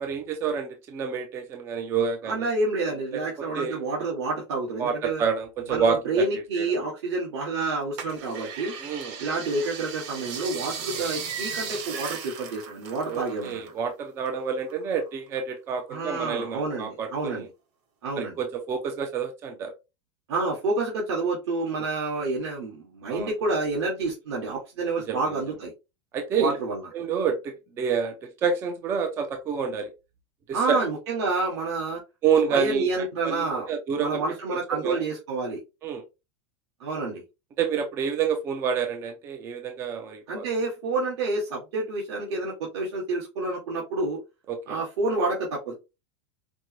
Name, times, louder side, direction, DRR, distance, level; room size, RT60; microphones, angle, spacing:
voice 1, 0.0-2.5 3.1-3.2 3.5-3.8 4.8-6.2 6.6-6.7 8.8-9.2 13.1-17.5 18.2-19.7 23.1-23.3 25.1-25.3 26.1-26.6 26.9-29.9 30.5-30.8 32.2-34.2 34.8-35.0 35.8-36.0 37.6-40.5 44.5-44.8, right 6 dB, 15° right, 6 dB, 0.4 m, -28 dB
voice 2, 2.2-5.2 5.7-8.7 9.2-13.7 15.9-17.4 18.0-18.4 20.3-25.7 26.4-26.8 30.5-32.0 32.5-33.7 34.0-35.6 36.8-37.2 40.3-44.2 44.7-45.8, right 3 dB, 70° right, -4 dB, 1.7 m, -28 dB
sound 1, 8.0-13.8 14.1-15.4 15.8-16.7 17.2-17.3, right 6 dB, 40° right, 0.9 m, -37 dB
5.1 x 2.1 x 2.9 m, 0.25 s
supercardioid pair, 170°, 15 cm